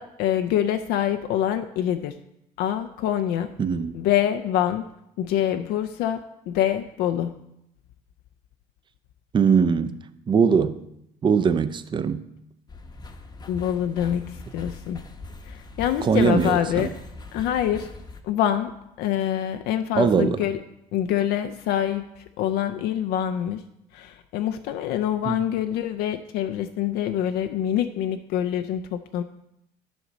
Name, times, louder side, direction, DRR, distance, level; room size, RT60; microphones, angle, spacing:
voice 1, 0.0-2.1 2.6-3.5 3.9-4.9 5.2-7.3 13.5-15.0 15.4-16.9 17.3-17.9 18.2-20.6 20.9-23.6 23.9-29.2, left 10 dB, 80° left, 7 dB, 0.5 m, -25 dB
voice 2, 3.6-4.0 9.3-10.0 10.3-10.8 11.2-12.3 16.0-16.9 20.0-20.4 25.3-25.4, right 6 dB, 30° right, 13 dB, 0.5 m, -21 dB
sound 1, 12.7-18.2, left 2 dB, 25° left, 0.8 m, -41 dB
11.0 x 4.0 x 6.2 m, 0.82 s
cardioid pair, 115°, 16 cm